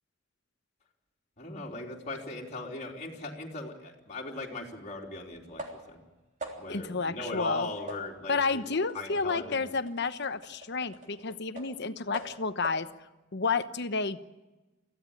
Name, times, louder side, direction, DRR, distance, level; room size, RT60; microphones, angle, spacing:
voice 1, 1.4-5.6 5.9-6.0 6.6-8.6 8.9-9.6, left 2 dB, 35° left, -2 dB, 3.5 m, -39 dB
sound 1, 4.4-4.5 5.6-6.0 6.4-6.8 7.3-7.5 7.9-11.8 12.1-12.9, right 2 dB, 40° right, 3.4 m, -45 dB
voice 2, 6.7-7.7 8.3-12.9 13.3-14.4, left 4 dB, 60° left, 11 dB, 1.1 m, -31 dB
24.5 x 15.5 x 8.6 m, 1.1 s
head